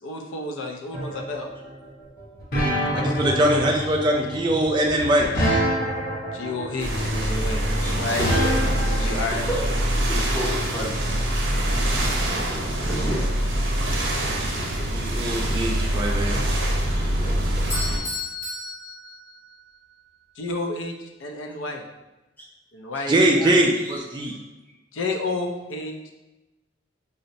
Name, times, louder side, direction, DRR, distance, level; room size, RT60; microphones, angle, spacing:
voice 1, 0.0-1.5 2.9-3.7 6.3-8.3 9.0-9.5 20.4-20.9 21.2-21.8 22.7-23.6 24.9-26.1, left 2 dB, 80° left, 3 dB, 0.5 m, -31 dB
sound 1, 0.9-9.1, equal, 55° left, 0.9 m, -26 dB
voice 2, 2.9-5.3 14.9-16.4 23.1-24.3, right 1 dB, 25° right, 0 dB, 0.3 m, -22 dB
sound 2, 6.8-18.0, right 1 dB, 70° right, 0.6 m, -24 dB
voice 3, 8.2-8.9 9.4-11.0 12.2-13.7 16.9-17.7 22.4-22.5 22.9-23.0 23.8-24.4, equal, 10° left, -5 dB, 0.7 m, -33 dB
Bell / Doorbell, 17.7-19.8, left 2 dB, 40° left, 1.1 m, -33 dB
3.9 x 2.1 x 2.6 m, 1.0 s
head